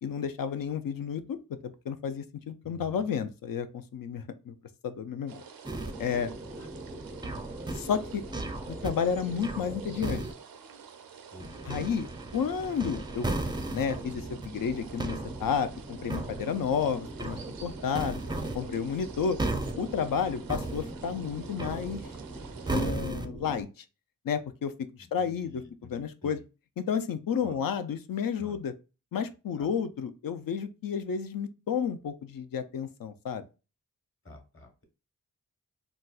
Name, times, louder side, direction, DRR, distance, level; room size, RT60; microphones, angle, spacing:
voice 1, 0.0-1.4 1.6-4.5 4.8-5.4 6.0-6.3 7.7-8.2 8.8-10.2 11.6-12.1 12.3-13.3 13.7-18.2 18.5-19.4 19.8-22.0 22.7-23.8 24.2-24.7 25.1-26.4 26.8-28.7 29.1-33.4, left 7 dB, 75° left, 0.5 m, -31 dB
voice 2, 2.6-3.1 6.6-6.7 11.3-11.5 25.0-26.4 27.4-27.6 28.4-28.6 29.6-29.7 34.2-34.8, left 2 dB, 35° left, 1.2 m, -50 dB
sound 1, 5.3-22.8, right 7 dB, 85° right, 0.5 m, -49 dB
sound 2, 5.6-10.3 11.4-23.6, right 2 dB, 15° right, 0.4 m, -36 dB
4.0 x 2.2 x 2.3 m
cardioid pair, 50°, 34 cm